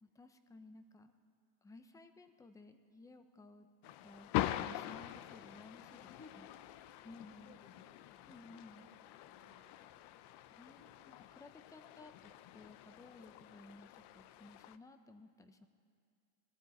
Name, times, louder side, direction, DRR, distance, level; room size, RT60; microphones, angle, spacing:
voice 1, 0.0-1.1 1.6-3.7 4.0-6.1 6.4-6.5 7.0-7.6 8.3-8.9 10.5-15.7, left 2 dB, 10° left, 9 dB, 0.4 m, -57 dB
sound 1, 3.8-14.8, left 14 dB, 55° left, 0.5 m, -44 dB
voice 2, 6.1-6.6 7.4-8.6 9.0-9.9, left 4 dB, 30° left, -2 dB, 1.7 m, -62 dB
23.5 x 15.0 x 4.1 m, 2.3 s
cardioid pair, 155°, 48 cm